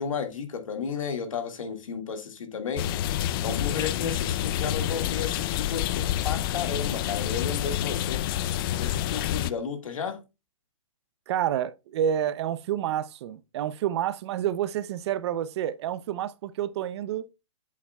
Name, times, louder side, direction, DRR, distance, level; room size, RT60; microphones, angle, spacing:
voice 1, 0.0-2.9 3.4-8.2 8.7-10.2, left 6 dB, 80° left, 1.9 m, -33 dB
sound 1, 2.8-9.5, left 12 dB, 45° left, 0.5 m, -28 dB
voice 2, 11.3-17.3, right 10 dB, 55° right, 0.6 m, -29 dB
8.3 x 7.3 x 2.3 m
hypercardioid pair, 125°, 17 cm